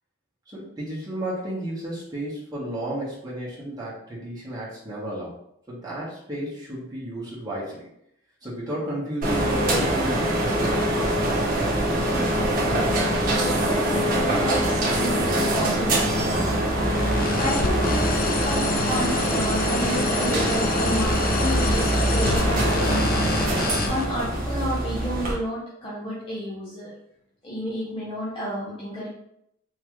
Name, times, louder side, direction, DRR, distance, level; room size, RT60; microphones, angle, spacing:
voice 1, 0.5-5.4 5.7-7.9 8.4-11.1, right 1 dB, 20° right, -7 dB, 1.3 m, -32 dB
sound 1, 9.2-25.3, right 1 dB, 40° right, 0.9 m, -23 dB
voice 2, 12.1-16.7 17.4-22.7 23.8-26.9 27.4-29.1, equal, 25° left, -7 dB, 0.7 m, -31 dB
sound 2, 16.9-24.0, left 4 dB, 40° left, 0.3 m, -29 dB
3.7 x 2.9 x 3.1 m, 0.74 s
head